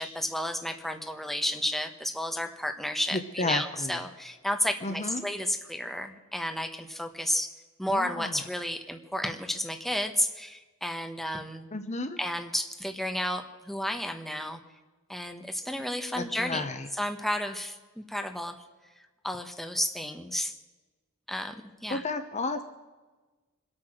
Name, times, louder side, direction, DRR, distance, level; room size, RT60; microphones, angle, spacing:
voice 1, 0.0-7.5 7.8-11.7 12.2-14.6 15.1-16.7 16.9-18.6 19.2-20.5 21.3-22.0, left 1 dB, ahead, 5 dB, 1.3 m, -32 dB
voice 2, 3.1-4.0 4.8-5.2 7.9-8.4 11.7-12.2 16.2-16.9 21.9-22.7, left 3 dB, 35° left, 9 dB, 0.9 m, -32 dB
25.5 x 8.8 x 6.4 m, 1.3 s
head